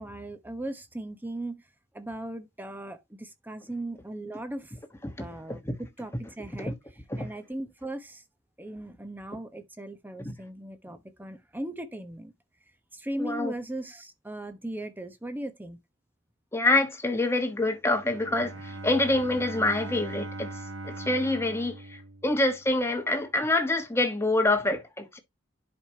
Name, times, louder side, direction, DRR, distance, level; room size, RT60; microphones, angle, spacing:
voice 1, 0.0-1.6 1.9-4.7 5.2-6.8 7.2-8.2 8.6-12.3 12.9-15.8, right 1 dB, 10° right, 0.9 m, -38 dB
voice 2, 5.0-5.7 6.6-6.7 7.1-7.3 10.2-10.3 13.2-13.5 16.5-20.5 20.8-25.2, left 2 dB, 15° left, 1.2 m, -26 dB
Bowed string instrument, 17.9-22.8, right 2 dB, 85° right, 1.0 m, -40 dB
10.5 x 5.1 x 2.8 m
head